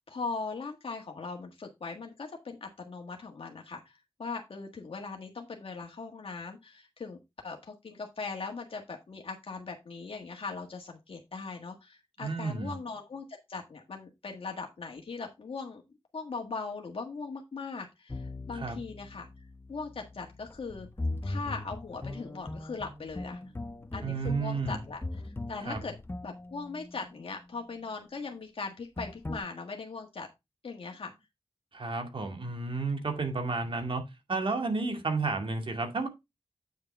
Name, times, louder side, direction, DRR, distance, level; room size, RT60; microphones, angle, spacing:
voice 1, 0.0-7.2 7.4-15.8 16.1-19.3 19.7-20.9 21.2-23.4 23.9-25.9 26.2-30.3 30.6-31.1, left 4 dB, 65° left, 1.6 m, -40 dB
voice 2, 12.2-12.7 18.5-18.8 24.0-24.8 25.7-25.8 31.7-34.0 34.3-36.1, right 3 dB, 60° right, 2.2 m, -31 dB
sound 1, 18.1-27.5 29.0-29.4, left 2 dB, 25° left, 0.9 m, -40 dB
8.9 x 6.5 x 3.4 m
wide cardioid pair, 115°, 10 cm